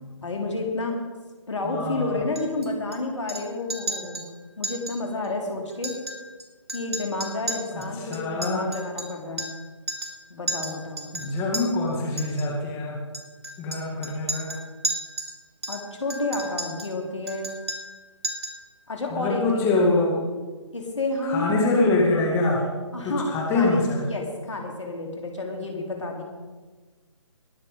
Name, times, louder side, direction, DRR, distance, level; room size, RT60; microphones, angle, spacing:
voice 1, 0.2-0.9 1.5-4.2 4.6-6.0 6.7-9.5 10.3-11.1 15.7-17.5 18.9-19.6 20.7-21.5 22.9-26.2, left 2 dB, 70° left, 1 dB, 3.8 m, -30 dB
voice 2, 1.6-2.1 7.7-8.6 11.1-13.0 13.6-14.5 19.1-20.1 21.2-22.6 23.0-24.0, left 2 dB, 15° left, -2 dB, 2.0 m, -24 dB
Chink clink, 2.4-3.0 3.3-3.4 3.7-4.3 4.6-5.0 5.2-5.3 5.7-6.4 6.7-9.6 9.9-10.2 10.5-11.6 12.2-12.5 13.1-15.3 15.6-16.9 17.3-18.0 18.2-18.6, right 2 dB, 55° right, 2.8 m, -33 dB
21.5 x 7.2 x 5.4 m, 1.3 s
figure-of-eight pair, 150°, 16 cm